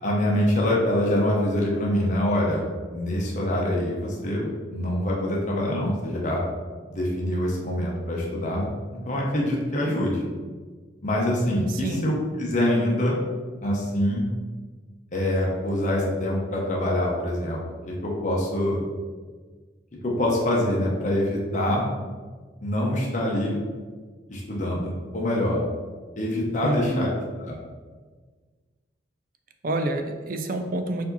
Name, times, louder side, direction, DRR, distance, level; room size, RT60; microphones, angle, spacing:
voice 1, 0.0-6.4 6.9-8.7 9.1-10.3 11.0-13.2 13.6-14.2 15.1-17.6 17.9-18.8 20.0-21.9 22.6-23.6 24.3-25.6 26.2-27.1 27.4-27.6, left 1 dB, 40° left, -3 dB, 0.7 m, -25 dB
voice 2, 26.6-27.1 29.6-31.1, right 1 dB, 45° right, 6 dB, 0.4 m, -27 dB
4.8 x 2.7 x 4.0 m, 1.4 s
head